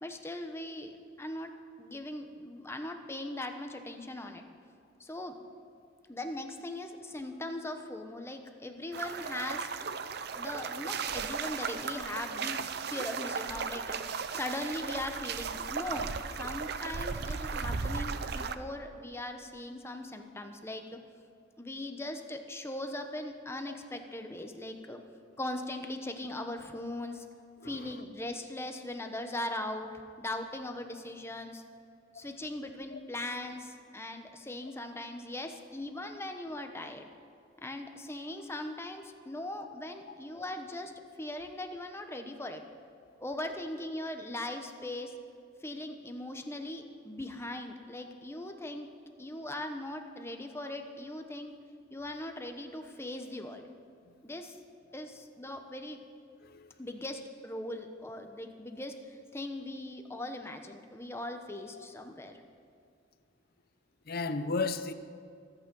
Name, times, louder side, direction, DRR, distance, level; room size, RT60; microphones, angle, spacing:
voice 1, 0.0-4.4 5.0-5.4 6.1-9.7 10.4-20.9 21.6-25.0 25.4-27.2 27.6-29.9 30.2-31.6 32.1-37.1 37.6-40.9 41.2-42.6 43.2-45.1 45.6-48.9 49.2-51.5 51.9-53.7 54.2-54.6 54.9-56.0 56.8-62.4, left 1 dB, 15° left, 5 dB, 1.1 m, -40 dB
sound 1, 8.9-18.5, right 5 dB, 60° right, 0.7 m, -36 dB
voice 2, 27.6-27.9 32.9-33.0 40.1-40.2 48.0-48.1 56.4-56.7 61.8-61.9 64.1-64.9, left 3 dB, 55° left, 11 dB, 0.8 m, -35 dB
24.5 x 9.1 x 5.5 m, 2.3 s
head